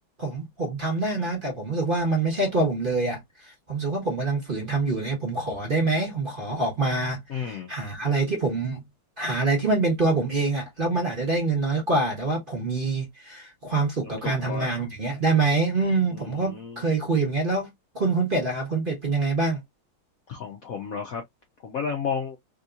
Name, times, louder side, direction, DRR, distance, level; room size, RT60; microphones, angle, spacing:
voice 1, 0.2-8.8 9.2-17.7 17.9-19.6, right 3 dB, 30° right, 1.1 m, -25 dB
voice 2, 7.3-7.7 14.0-14.9 16.1-16.8 20.3-21.2 21.6-22.4, left 6 dB, 90° left, 0.7 m, -32 dB
3.5 x 2.8 x 2.4 m
omnidirectional pair, 2.4 m